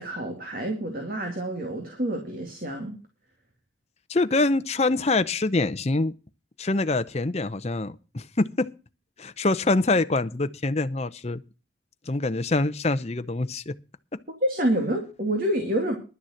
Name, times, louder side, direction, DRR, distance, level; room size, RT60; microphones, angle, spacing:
voice 1, 0.0-3.0 14.4-16.0, right 1 dB, 45° right, 2.3 m, -28 dB
voice 2, 4.1-6.1 6.6-8.7 9.2-11.4 12.1-13.8, left 2 dB, 30° left, 0.7 m, -25 dB
11.5 x 7.0 x 7.8 m
head